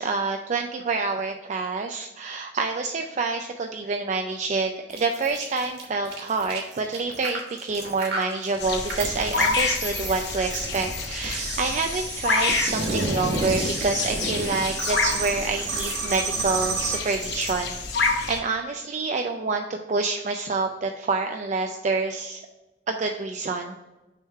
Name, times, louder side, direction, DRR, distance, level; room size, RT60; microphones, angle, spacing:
voice 1, 0.0-22.4 22.9-23.7, right 3 dB, 40° right, 4 dB, 0.4 m, -27 dB
sound 1, 4.9-17.5, right 3 dB, 60° right, 1.5 m, -31 dB
sound 2, 8.6-18.4, left 4 dB, 65° left, 0.8 m, -29 dB
6.3 x 3.7 x 4.3 m, 1.1 s
head